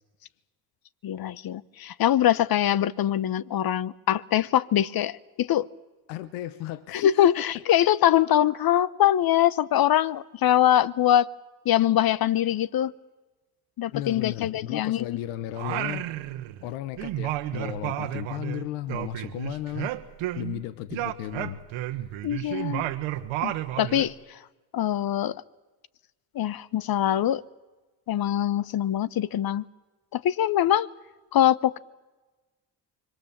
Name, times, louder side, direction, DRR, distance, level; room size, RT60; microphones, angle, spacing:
voice 1, 1.0-5.7 6.9-11.3 11.6-12.9 13.8-15.2 22.2-22.9 23.4-24.4 24.7-25.4 26.3-27.4 28.1-29.6 30.1-30.9 31.3-31.8, left 11 dB, 50° left, 20 dB, 0.9 m, -23 dB
voice 2, 6.1-7.3 13.9-16.0 16.6-19.9 20.3-21.7 22.0-22.1, left 13 dB, 85° left, 15 dB, 1.1 m, -34 dB
Singing, 15.5-16.7 17.0-20.6 20.9-24.1, right 14 dB, 75° right, 1.5 m, -32 dB
25.0 x 23.0 x 7.4 m, 1.2 s
supercardioid pair, 70°, 47 cm